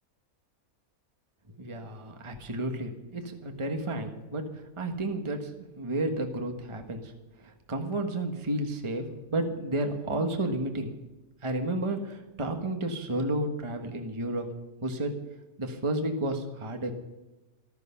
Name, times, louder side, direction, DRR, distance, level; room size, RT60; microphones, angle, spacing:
voice 1, 1.5-7.1 7.4-10.9 11.4-14.5 14.8-15.1 15.6-16.9, right 1 dB, 20° right, 4 dB, 1.4 m, -32 dB
14.5 x 13.5 x 5.8 m, 1.0 s
omnidirectional pair, 1.7 m